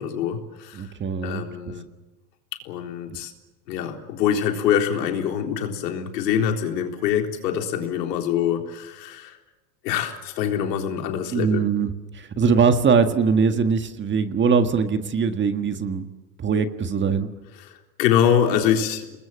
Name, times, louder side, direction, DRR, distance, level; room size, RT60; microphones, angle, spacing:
voice 1, 0.0-0.9 1.2-1.8 2.7-3.3 3.7-9.4 9.8-11.6 17.6-19.1, left 9 dB, 85° left, 4 dB, 3.9 m, -24 dB
voice 2, 0.7-1.5 11.3-11.9 12.1-16.1 16.4-17.3, right 5 dB, 25° right, 9 dB, 1.6 m, -21 dB
29.5 x 20.5 x 7.5 m, 1.1 s
supercardioid pair, 135°, 48 cm